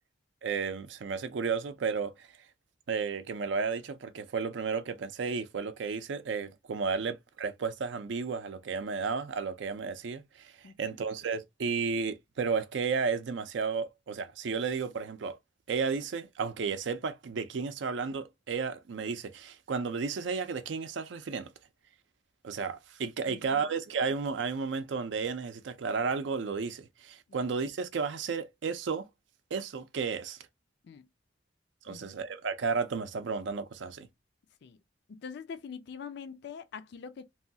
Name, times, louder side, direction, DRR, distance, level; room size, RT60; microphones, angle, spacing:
voice 1, 0.4-2.3 2.9-15.4 15.7-21.5 22.4-29.1 29.5-30.4 31.8-34.1, right 5 dB, 80° right, 0.4 m, -33 dB
voice 2, 10.6-11.0 23.3-23.6 27.3-27.4 30.8-31.0 31.9-32.2 34.6-34.8 35.1-37.2, left 6 dB, 65° left, 0.4 m, -44 dB
3.0 x 2.2 x 2.6 m
head